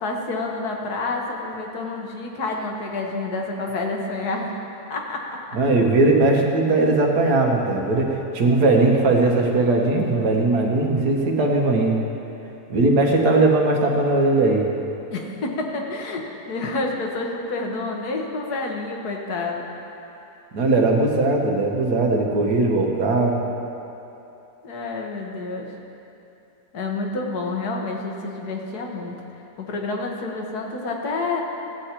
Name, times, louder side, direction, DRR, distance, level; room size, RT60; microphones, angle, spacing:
voice 1, 0.0-4.5 4.9-5.4 15.1-19.6 24.6-25.7 26.7-29.2 29.6-31.4, left 3 dB, 80° left, 1 dB, 1.7 m, -28 dB
voice 2, 5.5-12.0 12.7-14.6 20.5-23.4, right 2 dB, 85° right, 0 dB, 1.7 m, -19 dB
15.0 x 8.2 x 4.4 m, 2.9 s
omnidirectional pair, 1.6 m